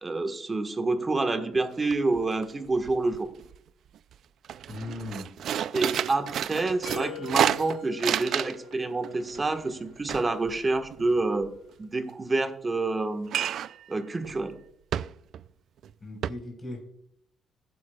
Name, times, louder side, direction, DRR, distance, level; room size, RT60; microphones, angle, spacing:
voice 1, 0.0-3.3 5.7-11.5 11.8-13.3 13.9-14.5, right 3 dB, 25° right, 7 dB, 1.3 m, -28 dB
sound 1, 1.5-1.6 1.9-2.4 2.7-3.6 4.0-4.1 4.4-8.7 9.0-11.5 13.3-13.8 14.2-14.4 14.9-15.5 15.8-15.9 16.2-16.3, right 10 dB, 70° right, 0.3 m, -30 dB
voice 2, 4.7-5.3 16.0-16.9, left 2 dB, 20° left, 2 dB, 4.2 m, -38 dB
sound 2, 6.9-9.7, left 12 dB, 90° left, 1.7 m, -44 dB
15.0 x 9.3 x 2.3 m, 0.71 s
cardioid pair, 90°, 0 cm